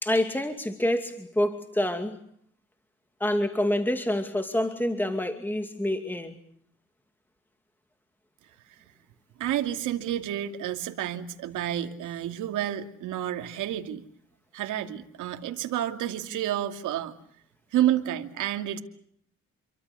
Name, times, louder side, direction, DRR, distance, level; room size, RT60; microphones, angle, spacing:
voice 1, 0.0-2.2 3.2-6.3, left 1 dB, 5° left, 6 dB, 2.5 m, -27 dB
voice 2, 9.4-14.0 14.5-17.1 17.7-18.8, right 11 dB, 85° right, 5 dB, 2.6 m, -29 dB
29.0 x 24.0 x 7.0 m, 0.67 s
cardioid pair, 90°, 30 cm